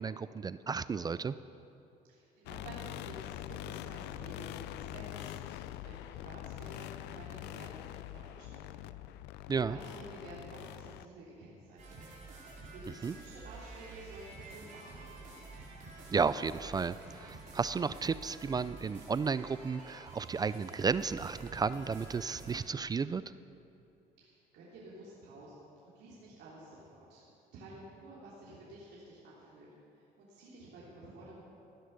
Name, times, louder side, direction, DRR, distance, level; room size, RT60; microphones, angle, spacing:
voice 1, 0.0-1.4 9.5-9.8 13.0-13.1 16.1-23.2, right 5 dB, 25° right, 15 dB, 0.3 m, -33 dB
voice 2, 2.1-3.3 3.6-8.9 9.6-12.0 12.7-15.4 24.2-27.2 27.5-29.7 29.9-31.4, right 1 dB, 80° right, -7 dB, 3.1 m, -51 dB
sound 1, 2.5-11.1, left 14 dB, 90° left, 0.4 m, -44 dB
sound 2, 11.8-22.5, right 3 dB, 50° right, 4.2 m, -49 dB
16.0 x 10.5 x 6.6 m, 2.7 s
cardioid pair, 110°, 17 cm